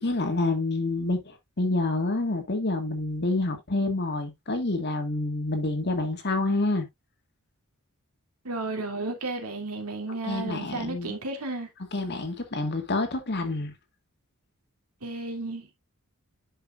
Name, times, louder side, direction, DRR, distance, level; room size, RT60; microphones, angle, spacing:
voice 1, 0.0-6.9 10.2-11.2 11.9-13.7, left 2 dB, 50° left, 1.9 m, -28 dB
voice 2, 8.4-11.7 15.0-15.7, right 2 dB, 90° right, 2.7 m, -33 dB
10.5 x 5.6 x 2.4 m
head